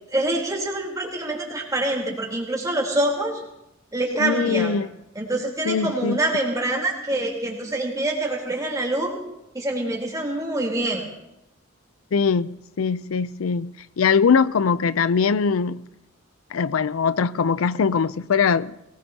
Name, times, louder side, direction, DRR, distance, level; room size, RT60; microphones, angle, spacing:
voice 1, 0.1-3.4 3.9-4.8 5.1-9.2 9.5-11.0, right 1 dB, 15° right, 3.7 m, -25 dB
voice 2, 4.2-4.9 5.7-6.2 12.1-15.8 16.5-18.7, left 6 dB, 85° left, 0.5 m, -22 dB
23.0 x 19.0 x 2.8 m
head